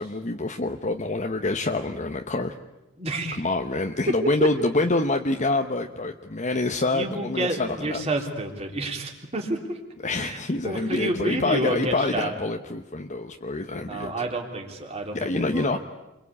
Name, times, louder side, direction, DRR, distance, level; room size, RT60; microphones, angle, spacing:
voice 1, 0.0-2.5 3.4-8.0 10.0-14.3 15.1-15.8, left 2 dB, 35° left, 4 dB, 1.0 m, -26 dB
voice 2, 3.0-3.4 6.9-9.8 10.2-10.4 10.6-12.3 13.9-15.8, right 1 dB, 30° right, 1 dB, 3.5 m, -29 dB
29.0 x 23.0 x 8.5 m, 0.99 s
head